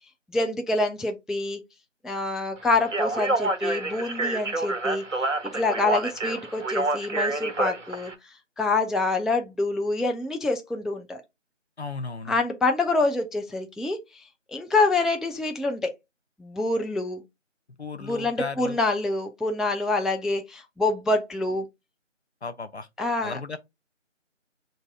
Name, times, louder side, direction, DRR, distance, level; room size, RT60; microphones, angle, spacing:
voice 1, 0.3-1.6 2.0-8.1 8.6-11.2 12.3-14.0 14.5-15.9 16.4-17.2 18.0-21.7 23.0-23.6, left 2 dB, ahead, 0.3 m, -26 dB
Speech, 2.8-8.1, right 2 dB, 75° right, 0.9 m, -28 dB
voice 2, 11.8-12.4 17.8-18.8 22.4-22.9 23.2-23.6, left 4 dB, 60° left, 0.5 m, -35 dB
6.8 x 2.6 x 2.2 m
figure-of-eight pair, 175°, 37 cm